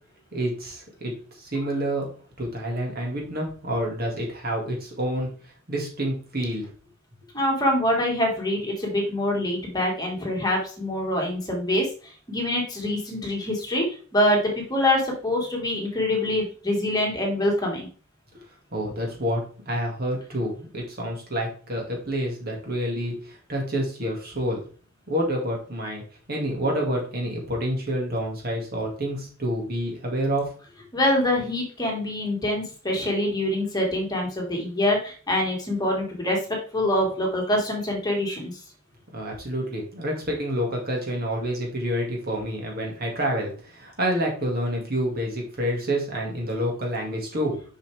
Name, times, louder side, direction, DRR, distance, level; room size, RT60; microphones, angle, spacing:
voice 1, 0.3-2.1 2.4-6.7 18.7-24.6 25.1-26.0 26.3-30.5 39.1-47.6, equal, 50° right, 0 dB, 2.2 m, -28 dB
voice 2, 7.3-11.9 12.3-13.8 14.1-17.9 30.9-36.4 36.7-38.6, left 1 dB, 20° left, -1 dB, 1.8 m, -25 dB
6.8 x 5.7 x 3.4 m, 0.40 s
head